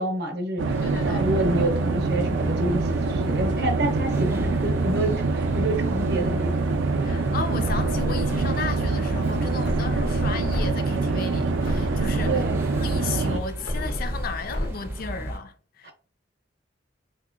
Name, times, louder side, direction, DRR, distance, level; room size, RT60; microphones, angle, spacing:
voice 1, 0.0-0.8 1.0-6.8 12.3-12.6 15.8-15.9, right 1 dB, 60° right, 0.7 m, -28 dB
sound 1, 0.6-13.4, right 3 dB, 85° right, 0.4 m, -25 dB
sound 2, 0.7-15.4, right 1 dB, 15° right, 0.4 m, -36 dB
voice 2, 0.8-1.3 7.0-12.4 12.8-15.9, left 5 dB, 50° left, 0.4 m, -34 dB
sound 3, 7.6-8.7 9.6-10.7 11.1-11.2 11.6-12.7 13.6-14.7, equal, 90° left, 0.8 m, -31 dB
3.6 x 2.8 x 2.4 m
head